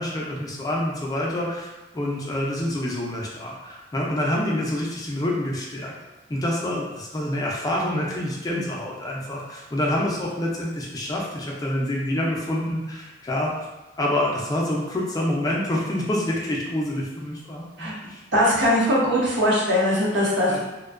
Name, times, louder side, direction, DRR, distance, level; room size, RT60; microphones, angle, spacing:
voice 1, 0.0-5.9 6.3-13.5 14.0-18.2 20.5-20.6, left 1 dB, 20° left, -3 dB, 0.4 m, -27 dB
voice 2, 18.3-20.6, equal, 65° right, -6 dB, 0.8 m, -20 dB
2.5 x 2.1 x 2.4 m, 1.1 s
head